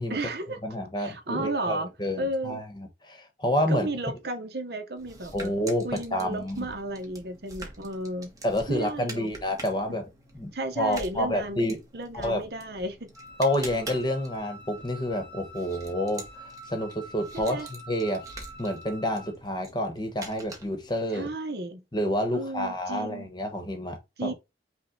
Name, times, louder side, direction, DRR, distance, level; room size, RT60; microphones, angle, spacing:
voice 1, 0.1-0.6 1.0-1.9 2.2-2.6 3.7-5.5 5.8-8.3 8.7-9.3 9.9-10.0 10.5-11.6 11.9-13.1 17.3-17.7 21.1-21.8 22.3-23.3 24.2-24.3, right 1 dB, 60° right, 0.9 m, -33 dB
voice 2, 0.6-3.9 5.3-6.6 8.4-10.0 10.3-11.8 12.1-12.4 13.4-18.2 18.6-21.3 21.9-24.3, left 1 dB, 25° left, 1.1 m, -29 dB
sound 1, 5.0-21.0, right 2 dB, 20° right, 1.0 m, -46 dB
Wind instrument woodwind instrument, 13.1-19.4, right 1 dB, 5° left, 0.7 m, -46 dB
5.6 x 2.3 x 3.7 m
head